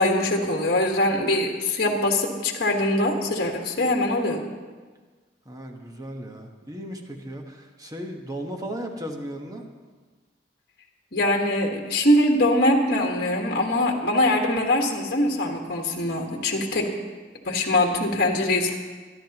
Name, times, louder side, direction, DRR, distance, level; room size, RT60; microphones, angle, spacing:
voice 1, 0.0-4.4 11.1-16.9 17.4-18.8, left 1 dB, 60° left, 1 dB, 1.6 m, -22 dB
voice 2, 5.4-9.7, right 1 dB, 20° right, 2 dB, 1.3 m, -36 dB
24.0 x 11.5 x 3.0 m, 1.4 s
head